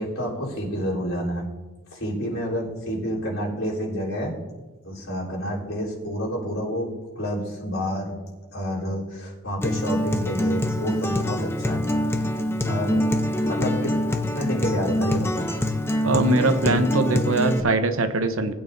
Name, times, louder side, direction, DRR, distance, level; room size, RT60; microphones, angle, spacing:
voice 1, 0.0-1.5 1.9-4.4 4.8-8.2 8.5-11.8 12.1-12.2 12.6-13.1 13.4-14.0 14.3-15.5, equal, 85° left, -5 dB, 3.7 m, -29 dB
Acoustic guitar, 9.6-17.6, left 1 dB, 10° left, 0.7 m, -25 dB
voice 2, 16.0-18.5, right 2 dB, 75° right, 8 dB, 0.9 m, -22 dB
19.5 x 8.8 x 2.7 m, 1.2 s
head